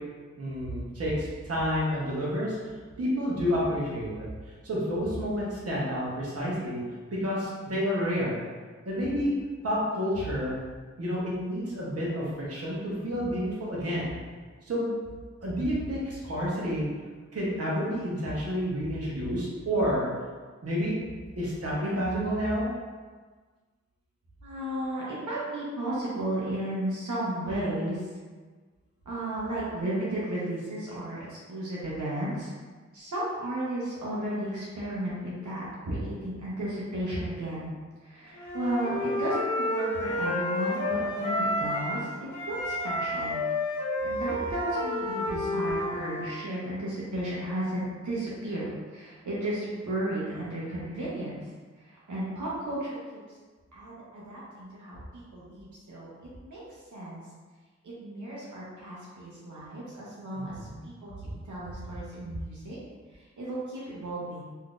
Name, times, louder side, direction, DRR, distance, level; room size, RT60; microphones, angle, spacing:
voice 1, 0.4-2.6 3.0-4.3 4.6-6.8 7.1-8.4 8.9-9.3 9.6-10.5 11.0-14.1 14.7-14.9 15.4-16.9 17.3-20.1 20.6-21.0 21.4-22.7 60.3-60.8, equal, 55° right, -6 dB, 0.9 m, -29 dB
voice 2, 24.4-28.0 29.1-32.5 32.9-37.7 38.0-42.1 42.4-43.4 44.0-51.4 51.9-53.0 53.7-56.1 56.4-56.6 56.9-57.2 57.8-60.5 60.8-61.1 61.5-62.8 63.4-64.4, right 1 dB, 90° right, -7 dB, 0.8 m, -34 dB
Wind instrument woodwind instrument, 38.3-42.0 42.3-46.3, left 1 dB, 80° left, 0.8 m, -30 dB
3.6 x 2.7 x 2.4 m, 1.4 s
wide cardioid pair, 80°, 29 cm